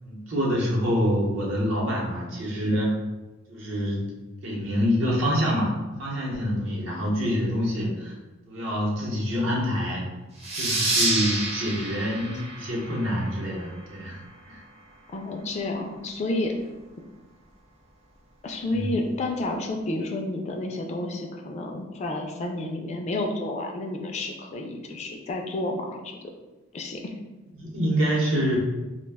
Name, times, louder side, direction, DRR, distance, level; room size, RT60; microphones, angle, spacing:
voice 1, 0.0-2.9 3.5-4.0 4.4-8.1 8.5-10.1 10.5-14.2 14.5-14.6 18.6-18.9 27.6-28.6, equal, 70° right, -3 dB, 0.8 m, -26 dB
sound 1, 10.4-13.7, right 2 dB, 30° right, 0.6 m, -28 dB
voice 2, 15.1-16.6 18.4-26.2 26.7-27.1, left 2 dB, 35° left, 2 dB, 0.3 m, -30 dB
2.4 x 2.1 x 3.3 m, 1.1 s
head